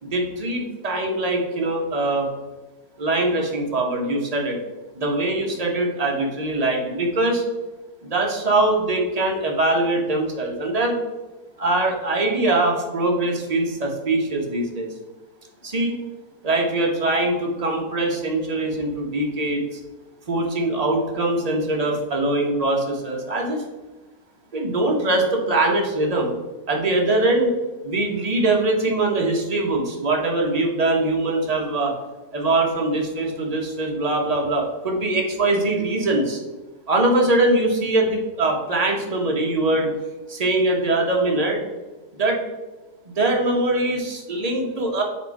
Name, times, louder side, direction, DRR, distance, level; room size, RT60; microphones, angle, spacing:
voice 1, 0.0-2.3 3.0-4.6 4.9-7.4 8.0-11.0 11.6-14.9 15.6-16.0 16.4-19.8 20.3-23.6 24.5-26.3 26.7-27.5 27.8-31.9 32.3-36.4 36.9-39.9 40.3-41.6 42.2-42.4 43.0-45.0, right 2 dB, 30° right, 0 dB, 0.9 m, -22 dB
7.3 x 3.6 x 4.5 m, 1.1 s
omnidirectional pair, 1.7 m